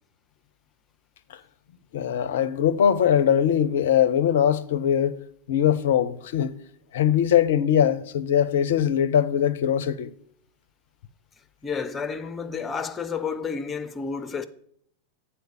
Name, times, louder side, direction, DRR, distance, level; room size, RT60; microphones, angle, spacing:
voice 1, 1.9-5.2 5.5-6.6 6.9-10.1, left 9 dB, 60° left, 0.5 m, -21 dB
voice 2, 11.6-14.5, left 5 dB, 20° left, 0.6 m, -30 dB
7.9 x 4.3 x 7.0 m
figure-of-eight pair, 90°, 0 cm